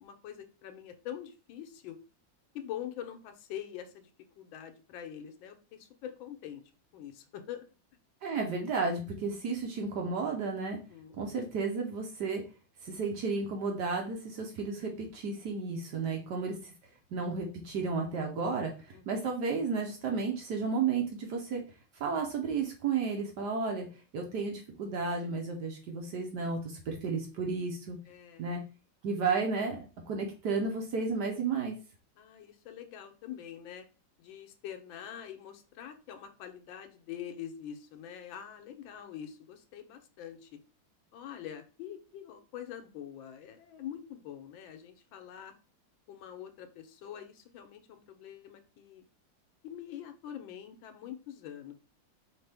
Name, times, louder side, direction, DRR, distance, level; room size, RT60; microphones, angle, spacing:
voice 1, 0.0-2.0 2.5-4.1 4.4-6.6 6.9-7.7 10.7-11.2 18.9-19.0 28.1-28.5 32.2-33.9 34.2-40.6 41.1-45.5 46.1-49.1 49.6-51.7, left 10 dB, 90° left, 6 dB, 1.5 m, -44 dB
voice 2, 8.2-10.8 11.1-12.4 12.8-16.7 17.1-21.6 22.0-23.9 24.1-28.0 28.4-28.6 29.0-29.8 30.1-31.8, right 4 dB, 65° right, 2 dB, 1.3 m, -33 dB
4.4 x 3.6 x 3.4 m, 0.34 s
omnidirectional pair, 2.1 m